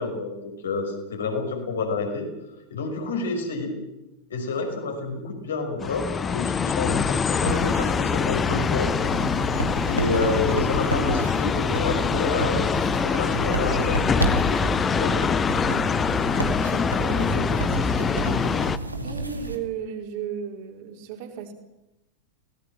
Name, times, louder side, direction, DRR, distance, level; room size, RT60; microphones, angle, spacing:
voice 1, 0.0-2.3 2.7-3.8 4.3-8.9 9.8-15.4, left 3 dB, 65° left, 3 dB, 5.8 m, -29 dB
sound 1, 5.8-18.8, left 6 dB, 20° left, 0.8 m, -24 dB
sound 2, 7.5-19.6, right 2 dB, 85° right, 2.2 m, -31 dB
voice 2, 16.6-18.4 19.0-21.5, right 8 dB, 50° right, 1 dB, 4.7 m, -35 dB
24.0 x 18.5 x 7.7 m, 0.95 s
figure-of-eight pair, 90°, 0 cm